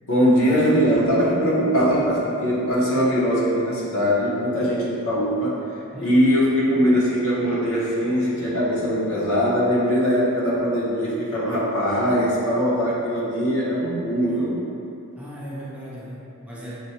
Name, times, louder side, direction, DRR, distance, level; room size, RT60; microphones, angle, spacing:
voice 1, 0.1-5.6 6.0-14.5, equal, 65° left, -7 dB, 0.9 m, -21 dB
voice 2, 15.2-16.7, equal, 5° right, -8 dB, 0.5 m, -37 dB
6.0 x 2.2 x 2.8 m, 2.7 s
head